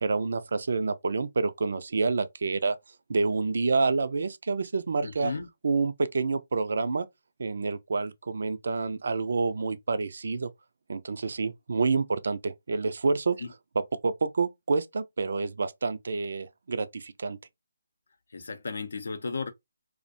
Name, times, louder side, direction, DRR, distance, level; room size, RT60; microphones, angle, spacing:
voice 1, 0.0-2.8 3.1-5.3 5.6-7.1 7.4-10.5 10.9-13.4 13.8-17.4, right 4 dB, 60° right, 0.3 m, -28 dB
voice 2, 5.0-5.5 13.4-13.5 18.3-19.5, left 4 dB, 65° left, 0.5 m, -34 dB
2.4 x 2.1 x 2.5 m
figure-of-eight pair, 150°, 0 cm